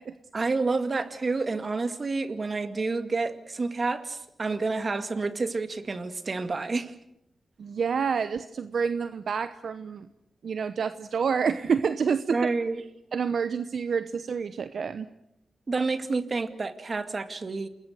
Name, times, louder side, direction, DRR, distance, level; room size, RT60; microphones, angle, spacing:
voice 1, 0.3-6.9 12.3-12.8 15.7-17.7, right 3 dB, 50° right, 9 dB, 2.2 m, -29 dB
voice 2, 7.6-10.1 10.4-12.5 13.1-15.1, right 6 dB, 70° right, 12 dB, 0.9 m, -28 dB
29.0 x 21.0 x 6.7 m, 0.83 s
cardioid pair, 50°, 0 cm